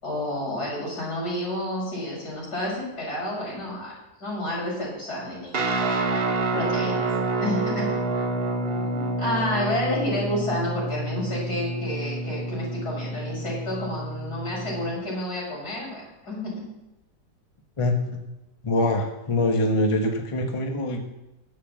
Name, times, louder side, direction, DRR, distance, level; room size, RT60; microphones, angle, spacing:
voice 1, 0.0-3.9 4.2-5.7 6.5-7.0 7.4-7.9 8.6-16.6, left 1 dB, 80° left, -5 dB, 6.0 m, -30 dB
Guitar, 5.5-14.9, right 2 dB, 40° right, 1.2 m, -28 dB
voice 2, 17.8-18.2 18.6-21.0, left 1 dB, 20° left, 4 dB, 1.1 m, -24 dB
11.5 x 7.7 x 7.5 m, 0.94 s
omnidirectional pair, 1.7 m